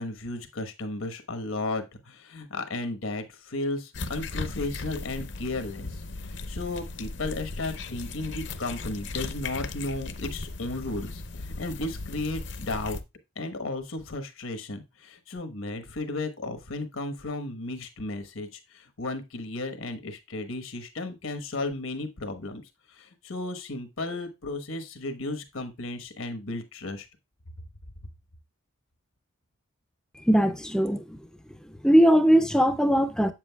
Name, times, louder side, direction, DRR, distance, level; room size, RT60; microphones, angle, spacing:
voice 1, 0.0-13.0 13.4-22.6 22.9-27.1, left 2 dB, 85° left, 1.2 m, -34 dB
sound 1, 3.9-13.0, left 3 dB, 60° left, 0.6 m, -37 dB
voice 2, 30.3-31.2 31.6-33.3, equal, 5° left, 0.4 m, -20 dB
7.9 x 7.4 x 2.3 m
head